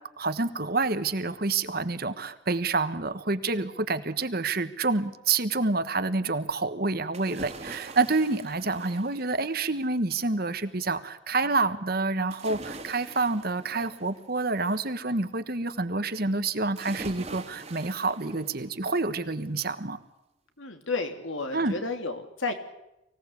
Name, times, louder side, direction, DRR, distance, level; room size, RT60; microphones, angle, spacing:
voice 1, 0.2-20.0 21.5-21.7, right 3 dB, 50° right, 11 dB, 1.4 m, -28 dB
sound 1, 7.1-10.0 12.3-14.9 16.8-19.0 19.5-19.6, right 3 dB, 30° right, 2.3 m, -44 dB
voice 2, 20.6-22.5, left 3 dB, 75° left, 6 dB, 2.9 m, -32 dB
24.5 x 17.5 x 8.4 m, 0.90 s
head